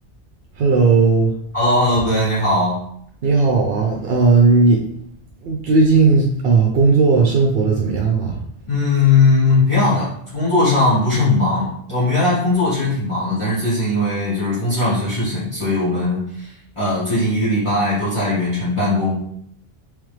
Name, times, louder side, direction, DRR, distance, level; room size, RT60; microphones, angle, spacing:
voice 1, 0.6-1.3 3.2-4.8 5.4-8.4, right 4 dB, 65° right, 0 dB, 0.8 m, -15 dB
voice 2, 1.5-2.8 8.7-19.1, left 2 dB, 30° left, -11 dB, 1.8 m, -19 dB
3.6 x 3.3 x 3.2 m, 0.69 s
omnidirectional pair, 1.1 m